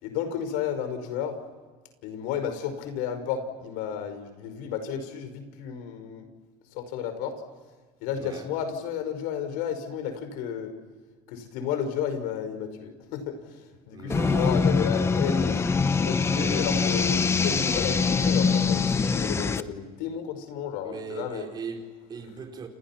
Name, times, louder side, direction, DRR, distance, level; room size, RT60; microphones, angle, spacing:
voice 1, 0.0-1.4 2.0-6.3 6.7-7.3 8.0-10.7 11.3-21.5, left 8 dB, 85° left, 5.4 m, -32 dB
voice 2, 8.1-8.5 13.9-14.6 16.0-17.0 20.8-22.7, right 5 dB, 30° right, 4.4 m, -39 dB
sound 1, 14.1-19.6, left 5 dB, 15° left, 0.9 m, -24 dB
30.0 x 29.5 x 6.0 m
cardioid pair, 155°, 15 cm